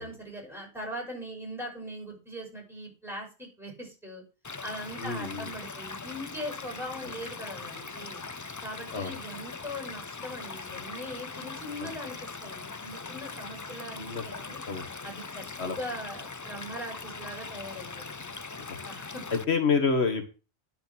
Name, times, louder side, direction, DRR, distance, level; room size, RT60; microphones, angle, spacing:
voice 1, 0.0-4.2 4.6-8.2 8.6-14.6 15.0-18.3 18.9-19.2, equal, ahead, -1 dB, 5.9 m, -40 dB
Stream / Liquid, 4.4-19.4, left 4 dB, 30° left, 0.4 m, -41 dB
voice 2, 5.0-5.5 8.9-9.1 11.8-11.9 14.0-14.2 14.7-14.9 15.6-15.8 18.7-18.8 19.3-20.3, left 5 dB, 90° left, 6 dB, 1.9 m, -28 dB
10.5 x 6.7 x 6.2 m, 0.33 s
omnidirectional pair, 1.1 m